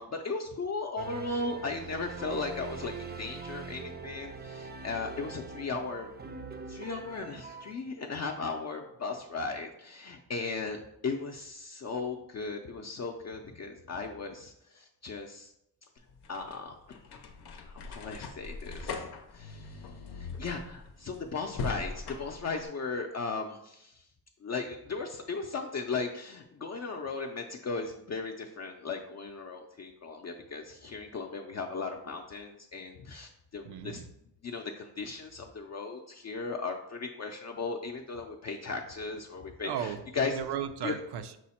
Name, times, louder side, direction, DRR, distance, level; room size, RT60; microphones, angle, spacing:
voice 1, 0.0-6.1 6.7-15.5 16.3-16.7 17.7-19.1 19.3-24.0 24.4-34.0 34.4-40.4 40.8-41.0, left 4 dB, 45° left, 2 dB, 0.4 m, -37 dB
sound 1, 1.0-7.8, right 4 dB, 25° right, 0.3 m, -43 dB
sound 2, 16.0-22.7, left 4 dB, 90° left, 0.6 m, -41 dB
voice 2, 33.7-34.1 39.6-40.0 40.3-41.4, right 8 dB, 85° right, 9 dB, 0.5 m, -35 dB
6.1 x 2.1 x 4.2 m, 0.78 s
cardioid pair, 90°, 39 cm